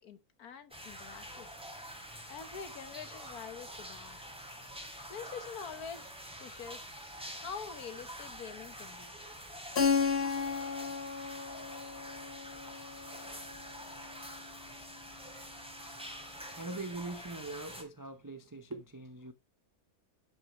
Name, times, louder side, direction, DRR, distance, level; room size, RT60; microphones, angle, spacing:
voice 1, 0.0-1.5 2.3-4.2 5.1-6.9 7.4-9.2, left 6 dB, 75° left, 1.8 m, -45 dB
sound 1, 0.7-17.8, equal, 5° right, 2.7 m, -47 dB
Keyboard (musical), 9.8-14.3, left 6 dB, 45° left, 1.5 m, -34 dB
voice 2, 16.5-19.3, right 2 dB, 20° right, 0.6 m, -42 dB
11.5 x 6.3 x 3.1 m
omnidirectional pair, 1.6 m